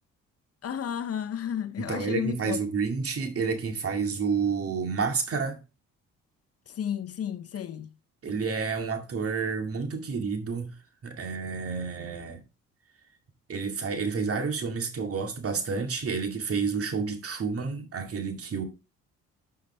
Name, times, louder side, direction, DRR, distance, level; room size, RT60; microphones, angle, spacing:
voice 1, 0.6-2.6 6.7-7.9, left 9 dB, 50° left, 0.8 m, -32 dB
voice 2, 1.8-5.6 8.2-10.7 11.0-12.4 13.5-18.6, right 5 dB, 50° right, 2.2 m, -30 dB
11.0 x 5.6 x 3.4 m
cardioid pair, 90°, 30 cm